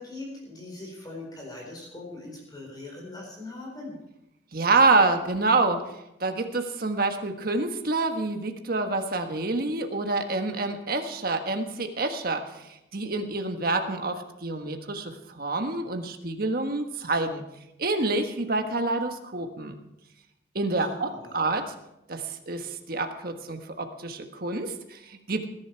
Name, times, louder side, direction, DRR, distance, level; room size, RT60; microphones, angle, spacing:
voice 1, 0.0-4.0 20.8-21.4, left 2 dB, 20° left, -2 dB, 4.4 m, -41 dB
voice 2, 4.5-5.8 6.2-17.4 17.8-19.8 20.5-21.7 22.1-25.5, right 3 dB, 50° right, 5 dB, 1.4 m, -27 dB
20.0 x 11.0 x 4.6 m, 0.86 s
head